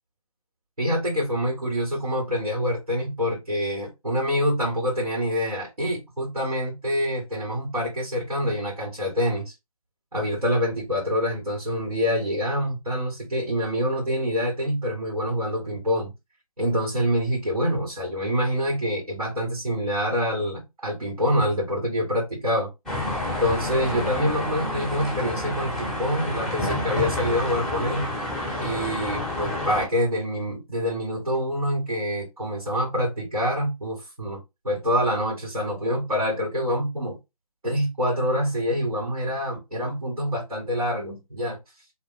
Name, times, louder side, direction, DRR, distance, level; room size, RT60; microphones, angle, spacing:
voice 1, 0.8-9.5 10.1-16.1 16.6-22.7 23.4-28.1 28.6-37.2 37.6-41.6, equal, 80° right, 1.8 m, -26 dB
sound 1, 22.9-29.9, left 1 dB, ahead, 0.7 m, -29 dB
2.8 x 2.1 x 3.5 m
figure-of-eight pair, 145°, 19 cm